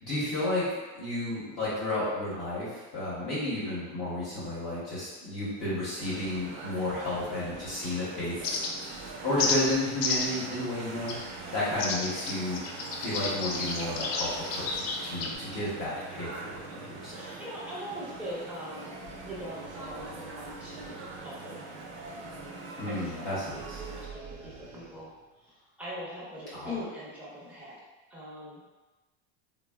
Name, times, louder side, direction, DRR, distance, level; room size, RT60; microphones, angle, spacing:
voice 1, 0.0-0.7 0.9-8.5 9.2-12.6 13.0-17.3 22.8-23.8 26.5-26.7, left 1 dB, 40° left, -9 dB, 0.9 m, -32 dB
sound 1, 6.0-24.1, right 3 dB, 55° right, 0.6 m, -43 dB
sound 2, 8.4-8.9 9.4-9.6 10.0-10.4 11.1-11.2 11.8-15.3, left 4 dB, 60° left, 0.5 m, -31 dB
voice 2, 17.0-19.0 19.2-21.7 22.6-25.1 25.4-27.8 28.1-28.6, equal, 5° right, -8 dB, 0.6 m, -42 dB
sound 3, 23.3-25.3, right 5 dB, 85° right, 0.8 m, -46 dB
3.3 x 2.2 x 2.2 m, 1.2 s
supercardioid pair, 150°, 33 cm